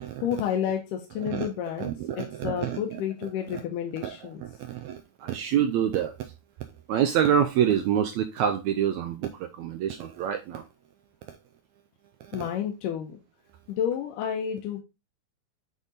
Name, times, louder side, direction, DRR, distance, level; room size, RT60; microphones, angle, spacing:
voice 1, 0.2-1.9 2.2-4.4 12.3-13.2 13.7-14.8, left 9 dB, 85° left, 2.3 m, -30 dB
voice 2, 1.8-3.0 3.5-3.6 4.0-4.2 4.4-6.3 6.9-10.6 11.3-11.4 12.2-12.5, right 9 dB, 80° right, 1.7 m, -27 dB
8.1 x 3.6 x 3.9 m
omnidirectional pair, 3.7 m